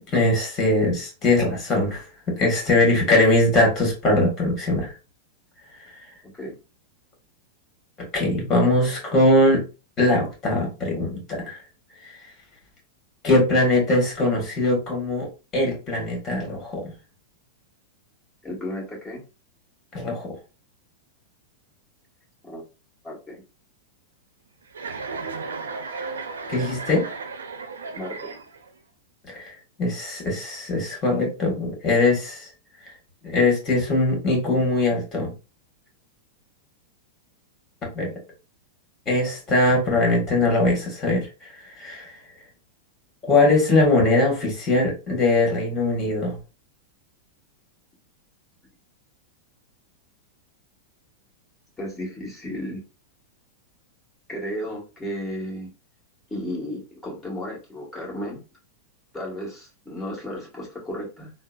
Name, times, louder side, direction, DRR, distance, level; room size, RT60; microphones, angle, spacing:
voice 1, 0.1-2.0 2.4-4.9 8.0-9.6 10.0-11.6 13.2-15.3 15.5-16.8 19.9-20.4 26.0-26.1 26.5-27.0 29.3-29.5 29.8-32.5 33.2-35.3 37.8-38.1 39.0-41.5 41.8-42.1 43.3-46.4, left 2 dB, 30° left, 0 dB, 1.6 m, -21 dB
voice 2, 18.4-19.2 22.4-22.6 23.0-23.4 28.0-28.3 51.8-52.8 54.3-55.7 56.3-58.4 59.1-61.3, equal, 15° left, -3 dB, 1.6 m, -33 dB
Chuckle chortle, 24.7-28.8, right 4 dB, 85° right, 0.5 m, -34 dB
3.6 x 2.0 x 2.4 m, 0.31 s
hypercardioid pair, 105°, 0 cm